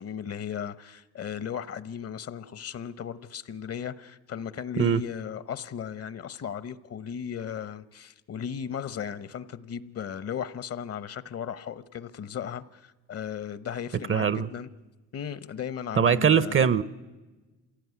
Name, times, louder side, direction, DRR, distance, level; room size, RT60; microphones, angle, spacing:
voice 1, 0.0-14.7 15.1-16.7, left 8 dB, 50° left, 1.0 m, -36 dB
voice 2, 14.1-14.5 16.0-16.8, right 7 dB, 45° right, 0.8 m, -21 dB
26.0 x 16.5 x 9.6 m
cardioid pair, 90°, 30 cm